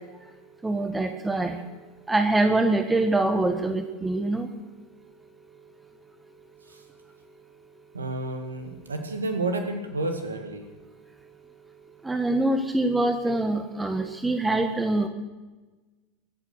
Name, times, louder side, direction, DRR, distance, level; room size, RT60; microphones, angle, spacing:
voice 1, 0.6-1.6 2.1-4.5 12.0-15.1, right 2 dB, 10° right, 7 dB, 1.4 m, -24 dB
voice 2, 7.9-10.6, right 2 dB, 80° right, 6 dB, 2.1 m, -30 dB
23.0 x 9.0 x 6.3 m, 1.2 s
figure-of-eight pair, 80°, 0 cm